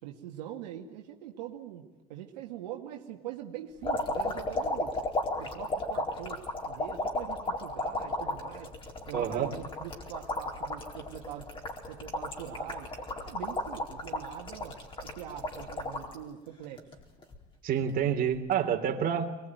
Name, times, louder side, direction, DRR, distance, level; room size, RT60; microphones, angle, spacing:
voice 1, 0.0-5.0 5.4-8.7 9.1-11.5 11.9-12.9 13.2-16.9, right 11 dB, 80° right, 1 dB, 2.2 m, -43 dB
sound 1, 3.8-16.2 16.6-17.4 18.4-18.5, left 2 dB, 25° left, 4.4 m, -34 dB
voice 2, 9.1-9.5 17.6-19.3, right 8 dB, 45° right, 3 dB, 3.4 m, -28 dB
23.0 x 21.5 x 9.4 m, 1.1 s
supercardioid pair, 100°, 21 cm